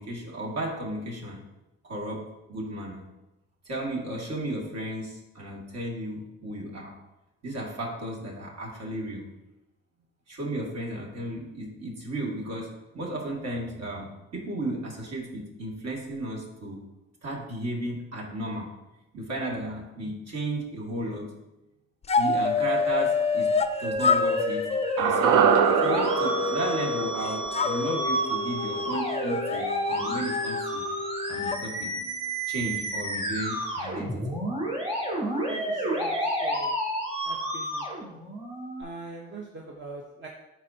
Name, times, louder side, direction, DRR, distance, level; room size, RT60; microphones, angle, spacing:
voice 1, 0.0-1.4 1.8-2.2 2.5-3.1 3.6-6.9 7.4-9.3 10.3-16.8 17.2-18.7 19.1-21.3 22.2-23.5 23.8-24.7 25.0-25.5 25.8-30.9 31.3-34.4, right 1 dB, 60° right, -2 dB, 2.4 m, -34 dB
sound 1, 22.1-23.7 24.0-27.1 27.5-31.6, left 5 dB, 20° left, 0.4 m, -28 dB
Musical instrument, 22.9-38.8, right 1 dB, 20° right, 2.6 m, -31 dB
sound 2, 25.0-29.3 29.6-29.7, right 7 dB, 85° right, 0.6 m, -25 dB
voice 2, 35.5-36.8 37.2-37.9 38.8-40.3, right 3 dB, 40° right, -1 dB, 1.0 m, -42 dB
11.0 x 4.4 x 2.8 m, 0.97 s
cardioid pair, 90°, 30 cm